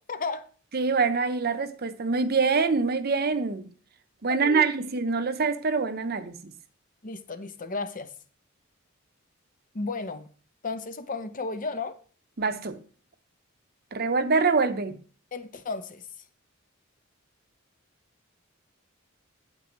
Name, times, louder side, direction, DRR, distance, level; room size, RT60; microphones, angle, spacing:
voice 1, 0.1-0.5 4.3-4.8 7.0-8.1 9.7-10.3 10.6-11.9 15.3-16.1, left 3 dB, 40° left, 0.7 m, -34 dB
voice 2, 0.7-3.7 4.2-6.5 12.4-12.8 13.9-14.9, right 4 dB, 50° right, 0.8 m, -25 dB
9.1 x 8.3 x 3.1 m
head